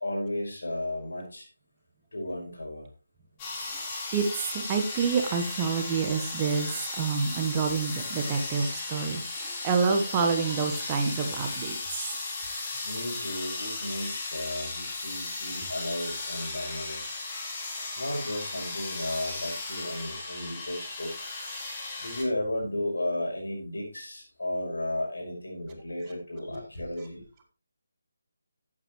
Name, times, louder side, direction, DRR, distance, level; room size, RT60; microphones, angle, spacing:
voice 1, 0.0-1.5 2.1-2.9 3.6-3.8 9.5-9.9 12.8-17.2 18.0-21.3 22.0-27.2, left 1 dB, 65° left, 0 dB, 5.1 m, -34 dB
sound 1, 3.4-22.2, left 3 dB, 20° left, 2.6 m, -36 dB
voice 2, 4.1-12.2, right 5 dB, 20° right, 5 dB, 1.2 m, -28 dB
12.5 x 8.6 x 3.1 m, 0.33 s
figure-of-eight pair, 150°, 0 cm